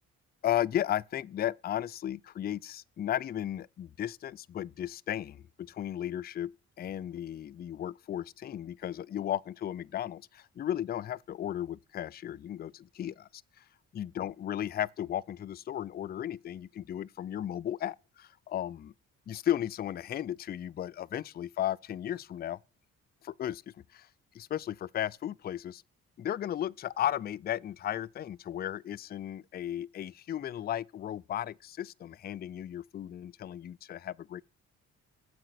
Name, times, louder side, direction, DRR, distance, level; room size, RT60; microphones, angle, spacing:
voice 1, 0.4-6.5 6.8-13.3 13.9-18.9 19.3-22.6 23.2-23.6 23.9-24.1 24.3-25.8 26.2-34.4, left 11 dB, 35° left, 0.4 m, -35 dB
7.7 x 5.0 x 6.5 m
cardioid pair, 90°, 30 cm